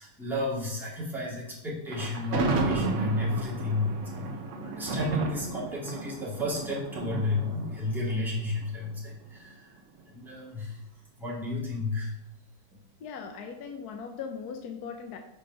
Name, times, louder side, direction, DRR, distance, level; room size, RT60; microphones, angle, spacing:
voice 1, 0.0-4.3 4.6-9.7 10.1-10.8 11.2-12.1 12.7-12.8, left 2 dB, ahead, -6 dB, 2.1 m, -32 dB
Thunder, 1.9-9.1, right 3 dB, 50° right, 1.0 m, -33 dB
voice 2, 13.0-15.2, left 6 dB, 65° left, 4 dB, 1.1 m, -39 dB
6.7 x 5.1 x 5.3 m, 0.88 s
omnidirectional pair, 2.1 m